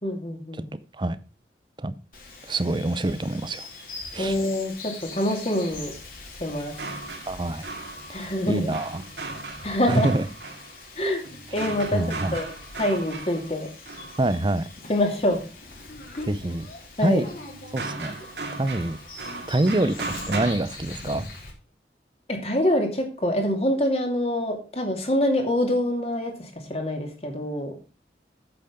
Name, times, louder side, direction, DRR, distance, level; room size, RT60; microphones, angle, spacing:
voice 1, 0.0-0.6 4.2-5.9 6.4-6.7 8.1-8.8 9.6-10.1 11.0-11.2 11.5-12.5 12.8-13.7 14.9-15.4 16.2-16.3 17.0-17.2 22.3-27.7, left 1 dB, 35° left, 3 dB, 2.6 m, -25 dB
voice 2, 0.6-1.2 1.8-1.9 2.4-3.7 4.1-4.4 7.3-7.7 8.1-9.0 9.9-10.3 11.9-12.4 14.2-14.6 16.3-16.7 17.0-17.2 17.7-18.2 18.5-19.0 19.5-19.9 20.3-21.3, right 2 dB, 25° right, 15 dB, 0.6 m, -25 dB
Bird vocalization bird call bird song, 2.1-21.5, left 3 dB, 50° left, 3.6 m, -43 dB
sound 1, 6.7-14.5 17.3-20.5, right 3 dB, 75° right, 2.2 m, -37 dB
8.6 x 8.1 x 5.2 m, 0.34 s
head